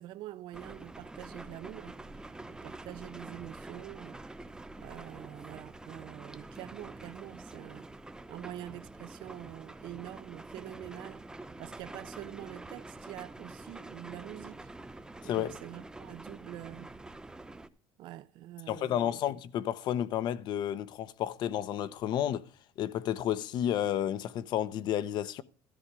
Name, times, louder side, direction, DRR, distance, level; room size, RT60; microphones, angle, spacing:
voice 1, 0.0-2.0 2.6-4.2 4.8-7.9 8.3-11.2 11.6-14.7 15.2-16.9 18.0-19.2, right 14 dB, 65° right, 0.7 m, -45 dB
sound 1, 0.5-17.7, right 2 dB, 10° right, 0.8 m, -47 dB
voice 2, 15.2-15.5 18.7-22.5 22.8-25.4, left 11 dB, 60° left, 0.8 m, -31 dB
13.5 x 4.9 x 6.8 m
cardioid pair, 130°, 9 cm